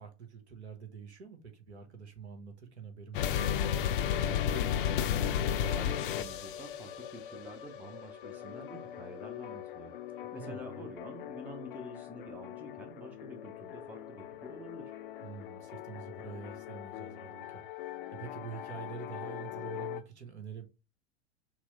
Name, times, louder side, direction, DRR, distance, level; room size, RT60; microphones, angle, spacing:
voice 1, 0.0-3.5 10.3-10.9 15.2-20.7, right 6 dB, 70° right, 1.2 m, -46 dB
sound 1, 3.1-20.0, left 9 dB, 50° left, 0.5 m, -36 dB
voice 2, 4.2-15.0, right 1 dB, 5° right, 0.4 m, -48 dB
5.9 x 2.0 x 3.1 m
figure-of-eight pair, 95°, 35 cm